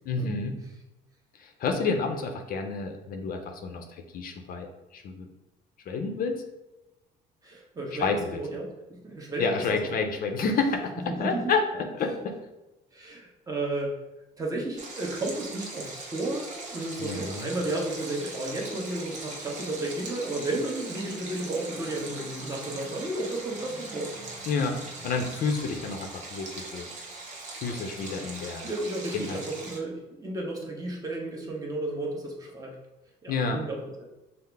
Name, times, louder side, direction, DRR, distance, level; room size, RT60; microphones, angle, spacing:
voice 1, 0.1-0.6 1.4-5.3 5.9-6.4 8.0-8.4 9.4-12.4 17.0-17.5 24.5-26.9 27.6-28.7 29.1-29.4 33.3-33.6, left 4 dB, 55° left, 4 dB, 0.6 m, -29 dB
voice 2, 7.4-9.9 11.1-11.5 12.9-13.9 14.4-24.1 28.6-32.7 33.2-34.0, right 2 dB, 20° right, -1 dB, 1.0 m, -33 dB
Stream, 14.8-29.8, right 3 dB, 45° right, 0.9 m, -41 dB
sound 1, 16.2-26.0, equal, 5° right, 0.9 m, -48 dB
5.6 x 2.0 x 3.4 m, 1.0 s
cardioid pair, 110°, 17 cm